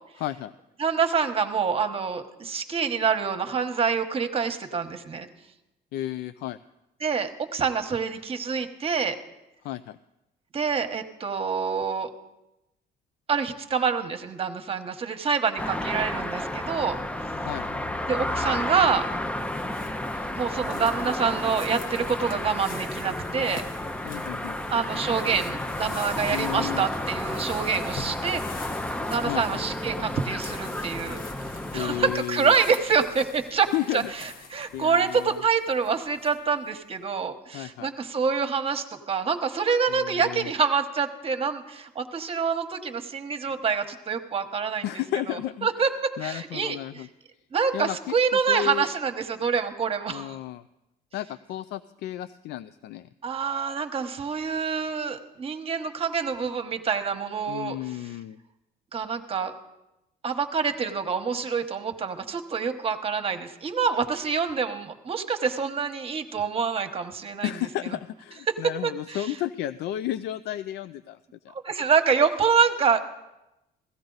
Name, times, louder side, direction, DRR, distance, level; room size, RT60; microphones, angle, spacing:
voice 1, 0.2-0.5 5.9-6.6 9.6-10.0 17.5-17.7 24.0-24.6 26.3-26.8 29.3-29.6 31.7-32.5 33.7-34.1 34.7-35.4 37.5-37.9 39.9-40.5 44.8-45.7 46.2-47.1 47.7-48.1 48.5-48.9 50.1-50.6 51.1-53.1 57.5-58.4 67.4-71.2 71.4-71.5, left 13 dB, 80° left, 14 dB, 0.4 m, -32 dB
voice 2, 0.8-5.3 7.0-9.2 10.5-12.1 13.3-17.0 18.1-19.0 20.4-23.7 24.7-28.4 29.1-31.2 31.7-44.9 45.3-47.0 47.5-50.4 53.2-57.8 58.9-59.5 60.2-67.5 68.8-69.3 71.6-73.0, right 6 dB, 35° right, 7 dB, 1.1 m, -26 dB
sound 1, 15.6-32.1, left 1 dB, 5° left, 0.5 m, -32 dB
sound 2, 18.9-36.7, left 4 dB, 60° left, 1.2 m, -44 dB
17.0 x 13.5 x 3.9 m, 0.92 s
cardioid pair, 110°, 17 cm